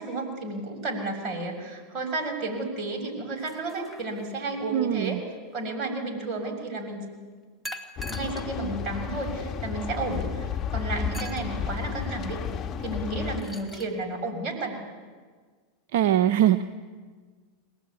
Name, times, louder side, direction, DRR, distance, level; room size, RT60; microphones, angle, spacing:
voice 1, 0.0-5.2 5.5-7.1 8.1-12.4 12.8-14.8, right 2 dB, 40° right, 2 dB, 6.8 m, -32 dB
sound 1, 3.4-4.5 7.6-8.5 9.2-9.3 11.1-11.5 13.2-13.9, equal, ahead, 2.4 m, -41 dB
voice 2, 4.7-5.2 15.9-16.6, right 11 dB, 65° right, 8 dB, 0.8 m, -22 dB
sound 2, 8.0-13.4, left 7 dB, 30° left, 1.6 m, -32 dB
22.5 x 19.5 x 9.6 m, 1.5 s
hypercardioid pair, 110°, 0 cm